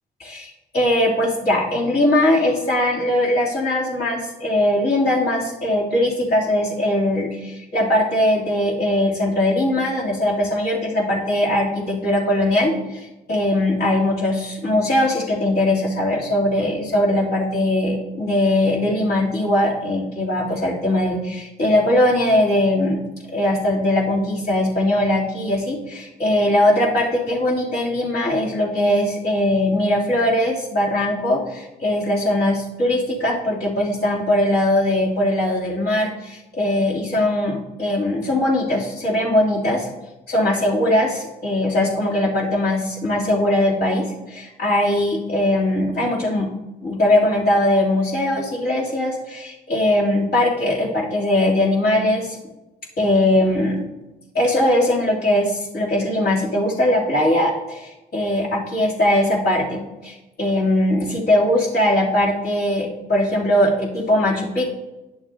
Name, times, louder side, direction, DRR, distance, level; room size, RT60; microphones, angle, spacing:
voice 1, 0.2-23.0 23.3-39.9 40.3-46.5 46.8-52.4 53.0-53.9 54.3-64.7, left 1 dB, 60° left, -6 dB, 3.0 m, -20 dB
10.5 x 6.9 x 2.8 m, 1.0 s
supercardioid pair, 55°, 18 cm